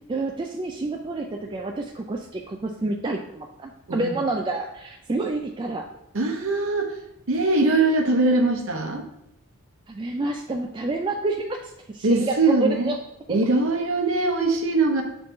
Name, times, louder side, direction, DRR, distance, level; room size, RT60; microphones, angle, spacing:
voice 1, 0.1-5.9 9.9-13.0 13.3-13.4, right 2 dB, 20° right, 1 dB, 0.3 m, -28 dB
voice 2, 6.1-6.9 7.3-9.1 12.0-12.9 13.3-15.0, right 2 dB, 60° right, 4 dB, 0.9 m, -22 dB
6.6 x 4.0 x 3.7 m, 0.84 s
head